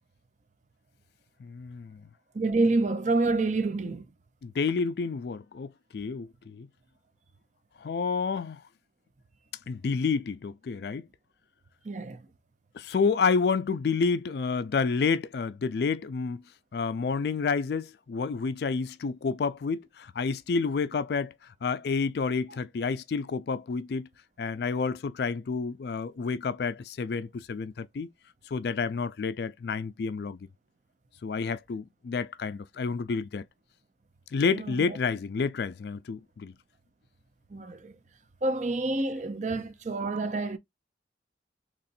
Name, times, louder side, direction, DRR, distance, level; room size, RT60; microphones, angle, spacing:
voice 1, 1.4-2.0 4.4-6.7 7.8-8.6 9.7-11.0 12.8-16.4 16.7-21.3 21.6-24.1 24.4-28.1 28.5-30.4 31.2-33.4 34.3-36.5 39.5-39.6, left 5 dB, 60° left, 0.4 m, -29 dB
voice 2, 2.3-4.1 11.8-12.2 34.5-35.0 37.5-37.9 38.4-40.6, right 2 dB, 40° right, 0.6 m, -28 dB
4.2 x 3.0 x 2.6 m
head